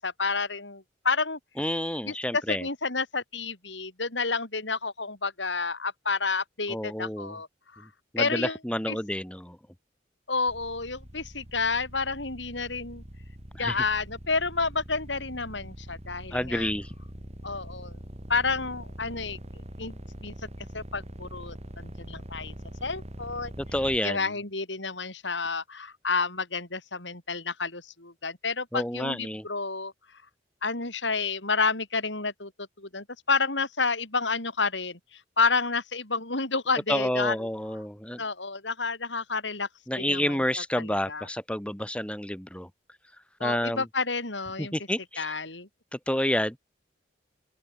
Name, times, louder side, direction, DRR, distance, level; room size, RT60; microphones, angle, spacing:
voice 1, 0.0-1.4 2.0-2.1 2.5-7.5 7.7-7.9 8.2-8.6 8.9-9.0 10.3-13.0 13.6-16.7 17.4-17.9 18.3-19.4 19.8-20.0 20.2-20.3 20.7-22.5 22.8-23.5 24.0-29.9 30.6-32.5 32.8-37.3 38.2-39.7 40.0-40.4 40.8-41.3 43.4-44.7 45.2-45.7, left 4 dB, 75° left, 6.2 m, -30 dB
voice 2, 1.6-2.6 6.7-7.4 8.1-9.6 13.6-13.8 16.3-16.9 23.6-24.3 28.7-29.5 36.9-38.2 39.9-42.7 43.4-43.8 44.6-45.3 46.1-46.6, left 1 dB, 5° left, 3.3 m, -29 dB
sound 1, 10.5-24.0, equal, 35° right, 3.4 m, -43 dB
open air
head